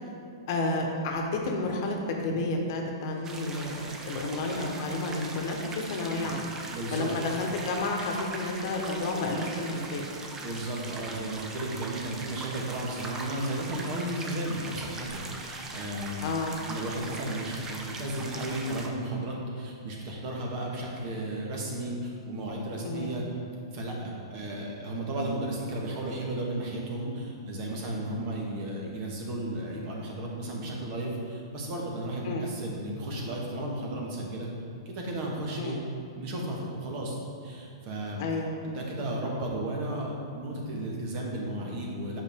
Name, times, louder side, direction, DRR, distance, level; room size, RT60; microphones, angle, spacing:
voice 1, 0.5-6.5 6.9-10.1 16.2-16.6 22.8-23.1 32.2-32.5 35.6-35.8 38.2-38.6, left 2 dB, 50° left, 1 dB, 1.1 m, -31 dB
sound 1, 3.2-18.9, right 2 dB, 20° right, 0.7 m, -40 dB
voice 2, 6.7-7.1 10.4-23.2 23.7-34.5 34.8-35.8 36.2-38.3 38.6-42.2, right 1 dB, 45° right, -2 dB, 1.5 m, -34 dB
8.0 x 5.6 x 3.6 m, 2.4 s
hypercardioid pair, 125°, 2 cm